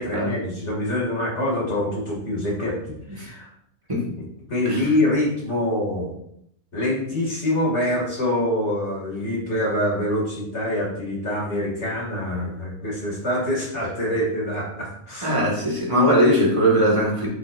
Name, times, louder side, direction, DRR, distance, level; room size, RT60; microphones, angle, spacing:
voice 1, 0.0-3.5 4.2-6.1 6.7-15.3, left 1 dB, 50° left, -4 dB, 3.0 m, -25 dB
voice 2, 15.2-17.3, equal, 20° right, -4 dB, 2.1 m, -19 dB
9.6 x 6.1 x 2.7 m, 0.73 s
omnidirectional pair, 1.6 m